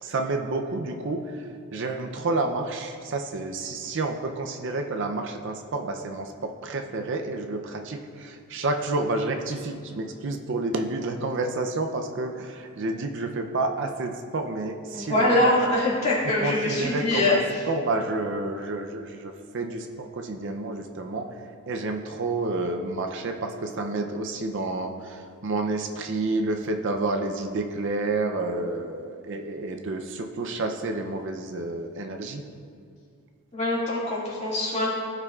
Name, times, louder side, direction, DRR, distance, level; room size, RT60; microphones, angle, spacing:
voice 1, 0.0-1.2 1.7-15.5 16.4-17.4 17.7-21.3 21.7-25.1 25.4-32.4, right 2 dB, 55° right, 4 dB, 0.5 m, -29 dB
voice 2, 14.9-17.7 33.5-34.9, left 1 dB, 30° left, -6 dB, 2.1 m, -24 dB
15.5 x 5.7 x 2.4 m, 2.2 s
head